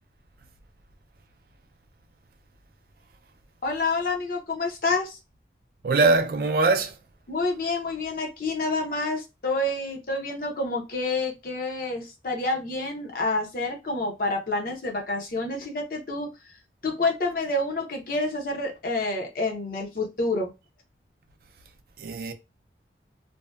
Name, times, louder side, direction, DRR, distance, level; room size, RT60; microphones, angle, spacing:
voice 1, 3.6-5.2 7.3-16.3 16.8-20.5, left 2 dB, 50° left, 0.7 m, -28 dB
voice 2, 5.8-6.9 22.0-22.3, right 3 dB, 55° right, 0.4 m, -22 dB
2.6 x 2.1 x 2.2 m
head